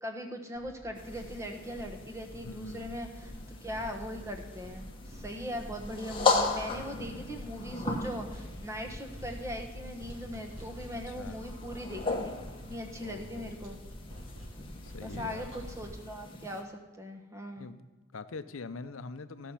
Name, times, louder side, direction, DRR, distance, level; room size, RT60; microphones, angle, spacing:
voice 1, 0.0-13.8 15.0-17.7, equal, 15° right, 4 dB, 1.1 m, -40 dB
sound 1, 0.5-15.9, equal, 80° right, 3.6 m, -46 dB
sound 2, 1.0-16.6, left 3 dB, 25° left, 1.0 m, -37 dB
voice 2, 2.4-2.9 6.7-7.5 10.9-11.4 13.0-13.5 14.8-15.5 17.6-19.5, left 4 dB, 80° left, 12 dB, 0.6 m, -44 dB
15.5 x 6.2 x 5.7 m, 1.2 s
head